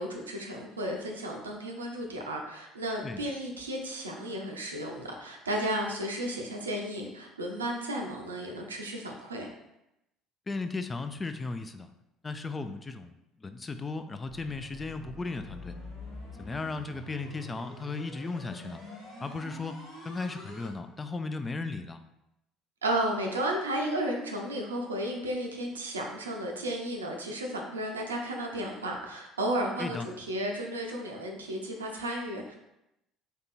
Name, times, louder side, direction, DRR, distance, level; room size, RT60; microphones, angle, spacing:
voice 1, 0.0-9.5 22.8-32.5, right 1 dB, 90° right, 1 dB, 0.5 m, -33 dB
voice 2, 10.5-11.9 12.2-15.7 16.4-18.8 19.2-22.0 29.8-30.1, left 3 dB, 25° left, 9 dB, 0.4 m, -36 dB
sound 1, 14.3-20.7, left 1 dB, 65° left, 1.5 m, -45 dB
3.4 x 2.7 x 4.0 m, 0.87 s
hypercardioid pair, 60°, 0 cm